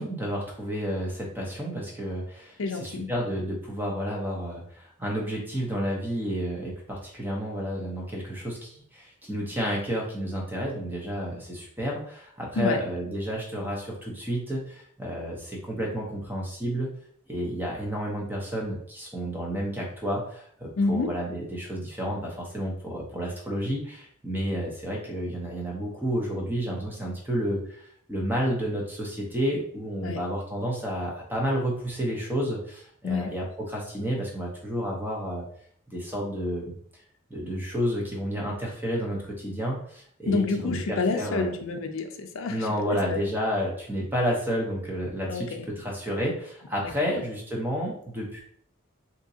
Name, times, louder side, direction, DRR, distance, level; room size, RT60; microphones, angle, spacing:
voice 1, 0.0-16.9 17.3-35.4 35.9-36.7 37.3-40.8 41.1-41.5 42.5-48.4, equal, 10° right, -2 dB, 0.7 m, -31 dB
voice 2, 2.6-3.1 12.5-12.8 20.8-21.1 30.0-30.2 33.0-33.3 40.3-43.2 45.3-45.7 46.8-47.2, left 3 dB, 65° left, 4 dB, 0.5 m, -28 dB
3.7 x 2.9 x 2.7 m, 0.62 s
head